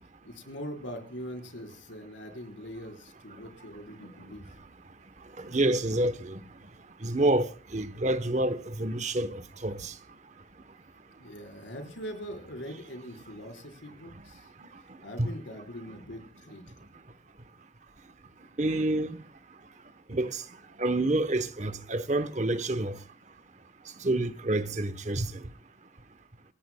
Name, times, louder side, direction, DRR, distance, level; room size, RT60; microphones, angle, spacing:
voice 1, 0.2-4.6 11.2-14.5 15.0-16.8, equal, 85° left, 4.2 m, -42 dB
voice 2, 5.4-6.4 7.0-9.9 15.2-15.3 18.6-19.2 20.1-20.4 20.8-23.0 24.0-25.4, right 2 dB, 40° right, 0.9 m, -28 dB
27.0 x 17.0 x 2.2 m
head